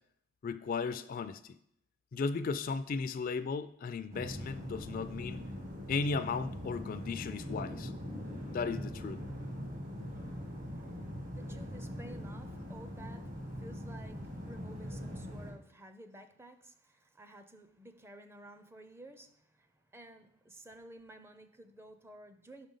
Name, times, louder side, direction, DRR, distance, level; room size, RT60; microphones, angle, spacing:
voice 1, 0.4-1.6 2.1-5.4 5.9-7.9 8.5-9.2, left 4 dB, 45° left, 11 dB, 0.3 m, -35 dB
sound 1, 4.1-15.5, equal, 45° right, 1.4 m, -42 dB
voice 2, 10.3-22.7, right 1 dB, 15° right, 9 dB, 0.5 m, -54 dB
5.6 x 5.1 x 5.4 m, 0.71 s
head